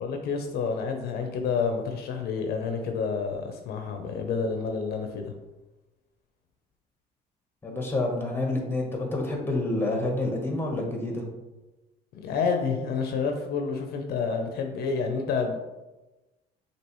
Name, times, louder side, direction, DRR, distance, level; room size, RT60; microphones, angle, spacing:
voice 1, 0.0-5.3 12.2-15.6, left 5 dB, 70° left, 5 dB, 0.6 m, -29 dB
voice 2, 7.6-11.3, left 2 dB, 15° left, 1 dB, 1.1 m, -28 dB
6.2 x 2.9 x 3.0 m, 1.1 s
cardioid pair, 110°, 17 cm